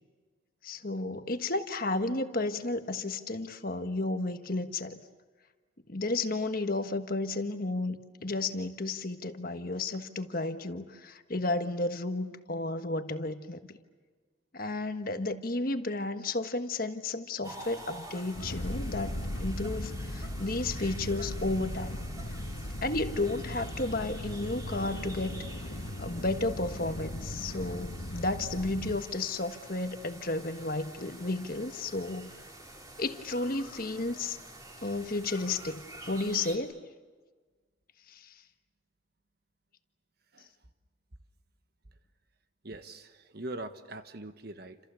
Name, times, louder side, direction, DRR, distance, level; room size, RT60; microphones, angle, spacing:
voice 1, 0.6-5.0 5.9-13.6 14.5-22.0 22.8-25.4 26.0-32.3 33.0-34.4 34.8-36.8 38.1-38.4, left 2 dB, 45° left, 8 dB, 1.4 m, -32 dB
sound 1, 17.4-36.6, right 1 dB, 20° right, 3.4 m, -48 dB
sound 2, 18.3-29.0, left 1 dB, 65° left, 1.5 m, -38 dB
voice 2, 42.6-44.8, right 2 dB, 50° right, 9 dB, 1.4 m, -42 dB
29.5 x 27.5 x 7.0 m, 1.4 s
head